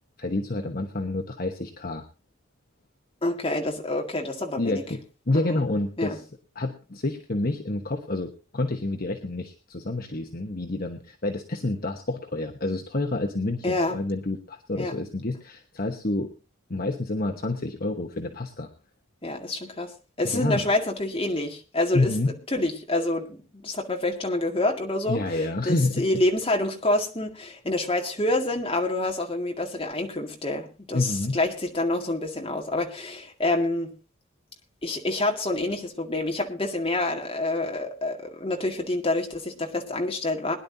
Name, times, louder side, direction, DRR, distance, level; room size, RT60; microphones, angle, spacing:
voice 1, 0.2-2.0 4.6-6.2 6.5-16.3 16.7-18.7 20.2-20.6 21.9-22.3 25.1-26.1 30.9-31.4, left 2 dB, 45° left, 4 dB, 1.1 m, -28 dB
voice 2, 3.2-4.8 5.5-5.6 6.0-6.2 13.6-14.0 14.7-14.9 19.2-33.9 34.8-40.5, left 2 dB, 25° left, 2 dB, 2.0 m, -27 dB
21.5 x 10.5 x 2.7 m, 0.32 s
head